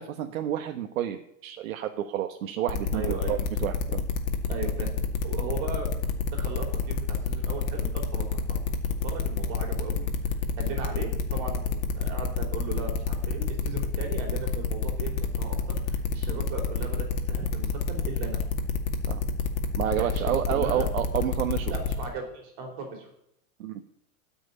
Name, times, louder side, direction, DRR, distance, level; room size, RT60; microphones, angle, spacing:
voice 1, 0.0-4.0 19.1-19.2 19.8-21.7 23.6-23.8, right 11 dB, 75° right, 5 dB, 1.2 m, -30 dB
sound 1, 2.7-22.0, left 6 dB, 80° left, 2.3 m, -28 dB
voice 2, 2.9-3.4 4.5-4.9 5.2-5.9 6.3-8.6 9.0-10.1 10.6-18.4 20.0-20.9 21.7-23.1, right 4 dB, 40° right, 3 dB, 3.9 m, -37 dB
13.5 x 6.2 x 9.8 m, 0.75 s
supercardioid pair, 175°, 40 cm